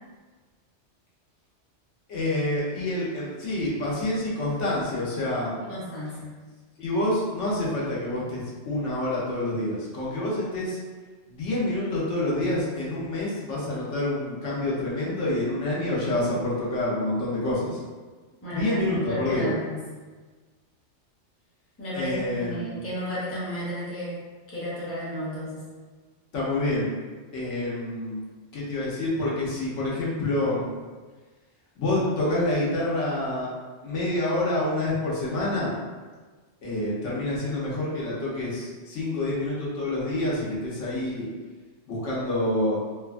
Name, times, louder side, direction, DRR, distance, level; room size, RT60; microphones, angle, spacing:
voice 1, 2.1-5.5 6.8-10.8 11.3-17.8 18.5-19.5 21.9-22.7 26.3-26.9 27.3-28.2 28.5-30.7 31.8-33.5 33.8-35.8 36.6-41.3 41.9-42.8, left 1 dB, 80° left, -6 dB, 1.0 m, -27 dB
voice 2, 5.6-6.3 18.4-19.8 21.8-24.3 24.5-25.6, equal, 15° left, -8 dB, 0.6 m, -33 dB
2.7 x 2.2 x 2.4 m, 1.4 s
omnidirectional pair, 1.2 m